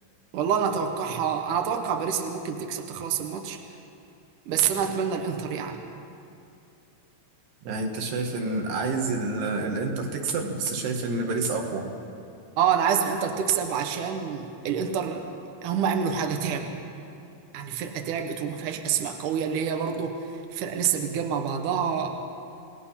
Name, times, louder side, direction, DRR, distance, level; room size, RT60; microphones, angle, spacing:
voice 1, 0.3-3.6 4.5-5.8 12.6-15.3 15.6-16.7 17.5-20.2 20.5-22.3, right 7 dB, 60° right, 4 dB, 2.6 m, -27 dB
voice 2, 7.7-11.9, right 3 dB, 85° right, 2 dB, 4.0 m, -28 dB
28.5 x 19.0 x 5.8 m, 2.7 s
omnidirectional pair, 4.6 m